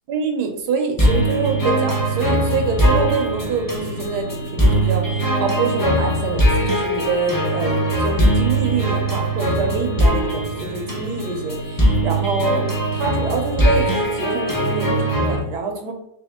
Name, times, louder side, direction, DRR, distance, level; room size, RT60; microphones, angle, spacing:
voice 1, 0.1-12.7 12.9-15.9, right 4 dB, 85° right, 4 dB, 1.3 m, -25 dB
sound 1, 1.0-15.4, right 1 dB, 35° left, 0.3 m, -20 dB
3.4 x 2.9 x 3.4 m, 0.80 s
omnidirectional pair, 1.8 m